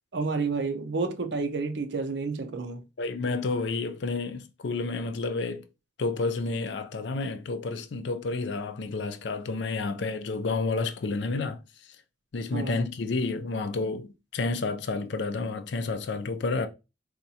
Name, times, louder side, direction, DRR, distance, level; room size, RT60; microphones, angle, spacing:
voice 1, 0.1-2.8 12.5-12.8, right 4 dB, 65° right, 0.5 m, -30 dB
voice 2, 3.0-5.7 6.0-11.6 12.3-16.7, left 3 dB, 70° left, 0.4 m, -30 dB
4.1 x 2.4 x 2.7 m
head